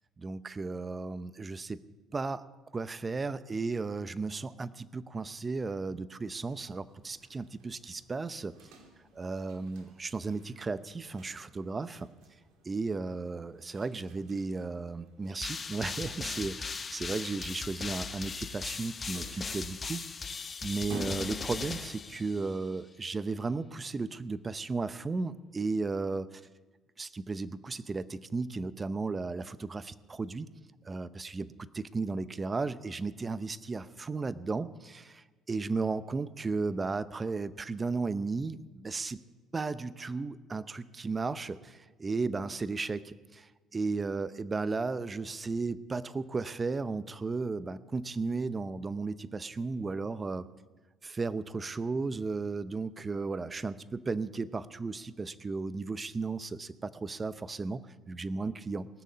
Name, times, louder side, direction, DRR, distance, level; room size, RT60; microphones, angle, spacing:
voice 1, 0.2-1.8 2.1-2.4 2.7-8.5 9.1-12.1 12.6-20.0 20.6-26.4 27.0-30.5 30.8-39.2 39.5-50.5 51.0-58.9, right 4 dB, 25° right, 15 dB, 0.7 m, -35 dB
sound 1, 6.3-22.4, right 2 dB, 80° right, 2.6 m, -52 dB
sound 2, 15.4-22.7, left 5 dB, 35° left, 1.0 m, -38 dB
19.0 x 6.6 x 9.4 m, 1.2 s
supercardioid pair, 90°, 0 cm